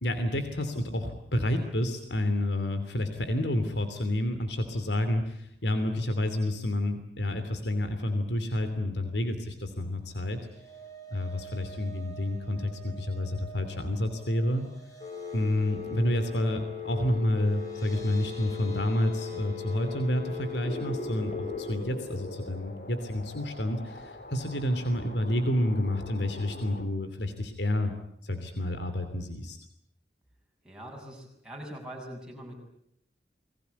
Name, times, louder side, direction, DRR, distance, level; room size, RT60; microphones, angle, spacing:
voice 1, 0.0-10.4 11.1-14.7 15.3-27.9 28.2-29.6, left 1 dB, 80° left, 9 dB, 3.0 m, -29 dB
sound 1, 10.0-24.2 24.6-24.8 25.1-25.2, right 5 dB, 20° left, 5.8 m, -52 dB
Telephone, 15.0-21.7, left 7 dB, 35° left, 3.8 m, -38 dB
sound 2, 20.6-26.9, left 1 dB, 55° left, 2.9 m, -42 dB
voice 2, 30.6-32.5, right 1 dB, 5° right, -1 dB, 7.6 m, -42 dB
29.5 x 21.0 x 8.3 m, 0.73 s
head